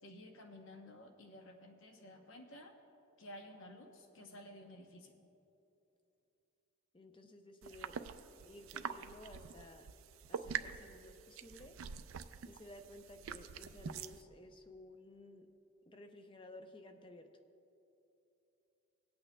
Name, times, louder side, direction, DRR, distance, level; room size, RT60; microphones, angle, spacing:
voice 1, 0.0-2.7 3.2-5.2, left 1 dB, 65° left, 3 dB, 0.8 m, -53 dB
voice 2, 6.9-8.0 8.5-9.9 10.3-11.8 12.4-15.5 15.9-17.3, left 1 dB, 25° left, 6 dB, 0.5 m, -55 dB
sound 1, 7.6-14.2, right 7 dB, 70° right, 0.4 m, -45 dB
21.0 x 8.6 x 2.2 m, 2.9 s
head